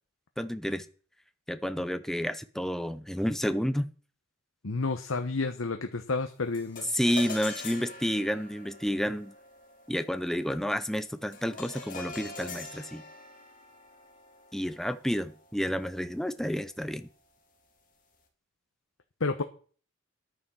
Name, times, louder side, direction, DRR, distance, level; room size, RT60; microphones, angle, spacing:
voice 1, 0.4-0.9 1.5-3.9 6.9-9.3 9.9-13.0 14.5-17.1, equal, ahead, 0.6 m, -30 dB
voice 2, 4.6-6.9 19.2-19.4, left 3 dB, 80° left, 1.0 m, -30 dB
sound 1, 6.5-16.0, left 3 dB, 40° left, 2.7 m, -44 dB
11.0 x 9.4 x 6.3 m
head